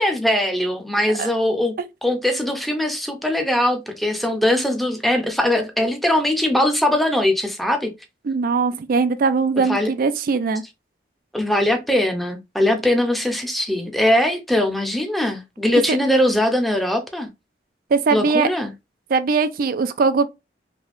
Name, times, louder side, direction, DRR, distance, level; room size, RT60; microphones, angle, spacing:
voice 1, 0.0-1.7 2.0-7.9 9.7-9.9 11.3-17.3 18.1-18.7, left 1 dB, ahead, 0.6 m, -21 dB
voice 2, 8.3-10.6 15.9-16.0 17.9-18.5 19.1-20.3, right 4 dB, 55° right, 0.4 m, -20 dB
3.4 x 2.8 x 2.5 m
head